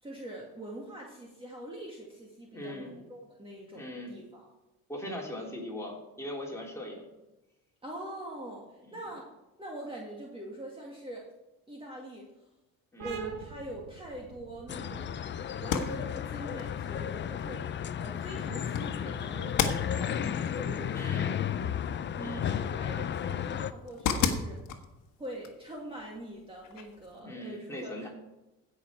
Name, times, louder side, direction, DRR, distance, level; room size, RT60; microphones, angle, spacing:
voice 1, 0.0-4.4 7.8-9.3 9.6-11.3 11.7-12.5 13.0-15.2 15.6-21.3 21.8-24.6 25.2-28.1, right 1 dB, 15° right, -2 dB, 2.0 m, -43 dB
voice 2, 2.5-2.9 3.7-4.1 4.9-7.1 8.9-9.0 12.9-13.2 20.9-21.4 22.2-22.4 27.2-28.1, left 1 dB, 10° left, -2 dB, 3.3 m, -40 dB
sound 1, 13.0-20.3, right 6 dB, 75° right, 1.6 m, -48 dB
sound 2, 14.7-23.7, left 9 dB, 35° left, 0.5 m, -33 dB
sound 3, 15.5-27.2, left 7 dB, 65° left, 1.4 m, -37 dB
15.5 x 6.1 x 4.7 m, 1.0 s
cardioid pair, 110°, 33 cm